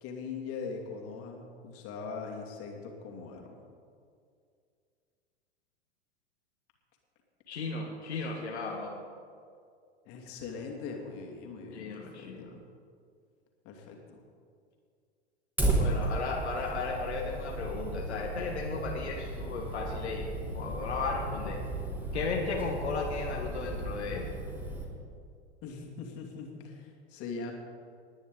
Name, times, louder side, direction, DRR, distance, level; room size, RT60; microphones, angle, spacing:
voice 1, 0.0-3.6 10.0-12.6 13.6-14.2 15.6-16.0 25.6-27.5, left 4 dB, 45° left, 1 dB, 2.5 m, -41 dB
voice 2, 7.5-9.0 11.7-12.5 15.8-21.6 22.1-24.3, left 4 dB, 80° left, -1 dB, 1.6 m, -35 dB
Fire, 15.6-24.8, right 2 dB, 5° right, 3.1 m, -34 dB
20.0 x 9.8 x 3.8 m, 2.3 s
figure-of-eight pair, 90°, 33 cm